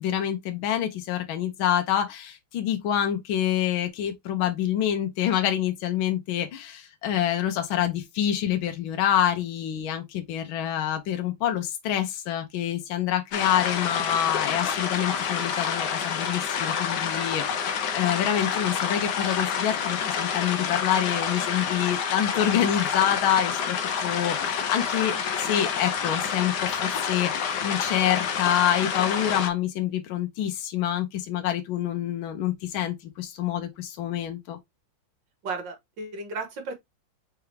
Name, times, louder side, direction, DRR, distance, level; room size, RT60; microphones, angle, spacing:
voice 1, 0.0-34.6, left 10 dB, 80° left, 1.6 m, -27 dB
sound 1, 13.3-29.5, left 7 dB, 65° left, 1.3 m, -28 dB
voice 2, 35.4-36.8, right 3 dB, 65° right, 2.0 m, -34 dB
4.8 x 3.4 x 3.1 m
omnidirectional pair, 2.2 m